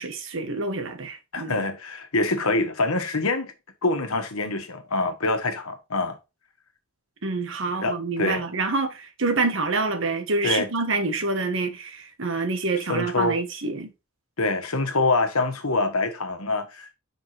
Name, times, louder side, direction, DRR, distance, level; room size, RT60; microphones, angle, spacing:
voice 1, 0.0-1.6 7.2-13.9, right 3 dB, 60° right, 1.3 m, -27 dB
voice 2, 1.3-3.5 3.8-6.2 7.7-8.4 10.4-10.7 12.9-13.4 14.4-16.9, left 3 dB, 90° left, 1.4 m, -25 dB
5.2 x 5.0 x 4.3 m
head